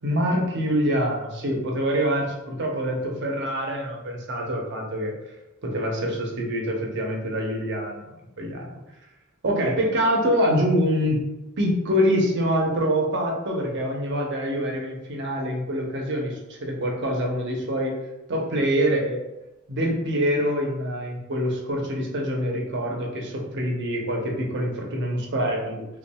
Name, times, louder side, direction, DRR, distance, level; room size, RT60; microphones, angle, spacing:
voice 1, 0.0-5.1 5.6-8.1 8.4-8.7 9.4-11.2 11.6-17.9 18.3-19.2 19.7-25.9, equal, 55° right, 0 dB, 0.8 m, -25 dB
5.5 x 2.5 x 2.3 m, 0.98 s
head